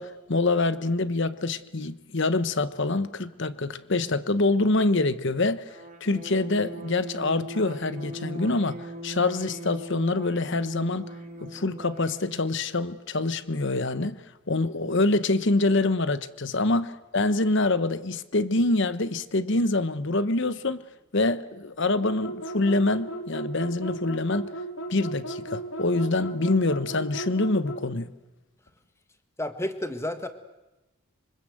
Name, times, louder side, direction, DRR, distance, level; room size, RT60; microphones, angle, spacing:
voice 1, 0.0-11.1 11.4-20.8 21.1-24.5 24.9-28.1, left 2 dB, 55° left, 1.1 m, -25 dB
sound 1, 5.7-12.5, right 1 dB, 35° right, 2.6 m, -40 dB
sound 2, 22.0-27.9, right 1 dB, 75° left, 2.5 m, -35 dB
voice 2, 29.4-30.3, left 1 dB, 10° left, 1.6 m, -31 dB
26.0 x 25.0 x 7.9 m
head